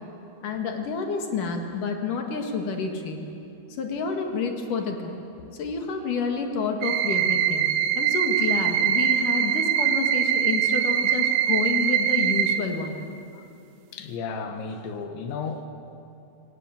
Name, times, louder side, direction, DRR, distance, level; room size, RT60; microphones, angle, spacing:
voice 1, 0.4-3.2 3.7-5.2 5.5-7.7 8.0-13.0, left 5 dB, 55° left, 3 dB, 3.0 m, -29 dB
sound 1, 6.8-12.6, right 10 dB, 70° right, 2.4 m, -23 dB
voice 2, 13.9-15.7, left 5 dB, 85° left, 6 dB, 3.9 m, -33 dB
27.0 x 18.0 x 9.0 m, 2.8 s
omnidirectional pair, 5.1 m